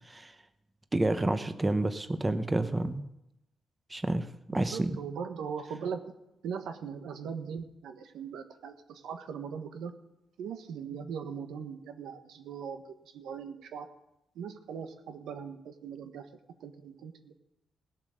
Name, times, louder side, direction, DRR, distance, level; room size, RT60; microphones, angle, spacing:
voice 1, 0.9-3.0 3.9-4.9, right 2 dB, 15° right, 10 dB, 0.8 m, -29 dB
voice 2, 4.5-6.1 6.4-9.9 10.4-13.9 14.3-16.3 16.6-17.4, right 6 dB, 90° right, 7 dB, 1.2 m, -40 dB
17.0 x 7.4 x 6.5 m, 0.87 s
cardioid pair, 120°, 0 cm